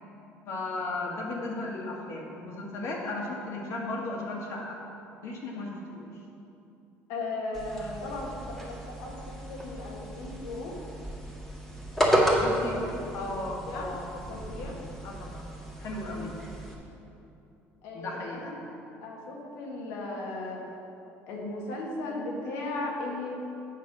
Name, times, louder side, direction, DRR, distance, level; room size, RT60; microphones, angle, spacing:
voice 1, 0.5-4.8 5.2-6.1 7.8-7.9 12.4-12.8 13.1-15.5 15.8-16.3 17.9-18.5, left 2 dB, 60° left, -2 dB, 1.8 m, -36 dB
voice 2, 7.1-10.8 11.9-12.9 13.3-13.4 13.7-13.9 14.3-14.7 17.8-20.6 21.3-23.3, left 2 dB, 85° left, -2 dB, 1.7 m, -37 dB
sound 1, 7.5-16.7, equal, 5° left, 1.8 m, -32 dB
8.4 x 5.8 x 6.1 m, 2.8 s
cardioid pair, 105°, 5 cm